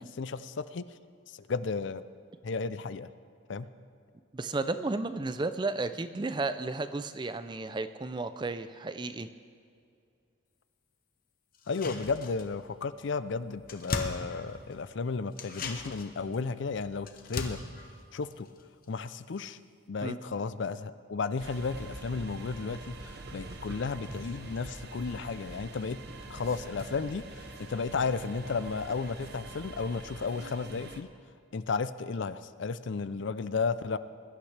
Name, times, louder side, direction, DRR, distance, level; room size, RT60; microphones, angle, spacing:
voice 1, 0.2-0.8 1.3-2.0 2.4-3.1 3.5-3.7 11.7-17.6 18.1-18.5 18.9-19.6 19.9-26.0 26.3-31.1 31.5-34.0, left 4 dB, 60° left, 14 dB, 0.4 m, -33 dB
voice 2, 4.3-9.3 20.0-20.2, right 3 dB, 20° right, 11 dB, 0.4 m, -33 dB
sound 1, 11.5-12.7 13.0-13.1 13.4-14.9 15.3-19.1 19.4-19.5, left 3 dB, 45° left, 1.0 m, -39 dB
sound 2, 21.4-31.0, right 2 dB, 50° right, 0.9 m, -45 dB
22.0 x 11.5 x 3.3 m, 2.4 s
head